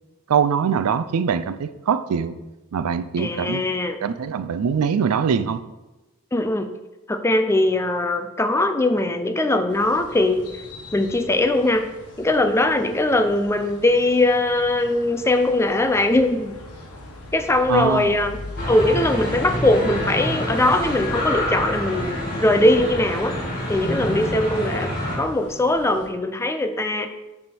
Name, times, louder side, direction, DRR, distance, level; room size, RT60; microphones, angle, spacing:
voice 1, 0.3-2.4 2.7-3.6 4.0-5.6 17.7-18.1, right 6 dB, 80° right, 14 dB, 0.4 m, -22 dB
voice 2, 3.2-4.0 6.3-6.7 7.1-10.5 10.9-11.9 12.2-16.6 17.3-18.4 18.7-23.3 23.7-24.9 25.2-27.1, left 1 dB, 10° left, 8 dB, 0.4 m, -20 dB
sound 1, 9.7-26.1, left 2 dB, 85° left, 1.1 m, -41 dB
sound 2, 18.6-25.2, left 1 dB, 45° left, 2.1 m, -27 dB
6.6 x 3.5 x 6.1 m, 1.0 s
head